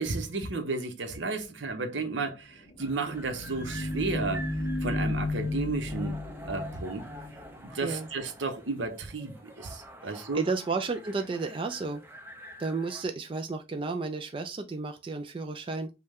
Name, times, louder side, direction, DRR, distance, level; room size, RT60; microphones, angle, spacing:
voice 1, 0.0-4.5 4.8-6.2 6.4-7.0 7.6-10.4, right 3 dB, 80° right, 0.8 m, -33 dB
sound 1, 2.5-8.0, left 2 dB, 50° left, 1.0 m, -34 dB
sound 2, 2.8-13.0, right 1 dB, 10° right, 0.8 m, -47 dB
voice 2, 10.0-12.0 12.6-15.9, right 3 dB, 30° right, 0.4 m, -32 dB
5.3 x 2.3 x 3.5 m
head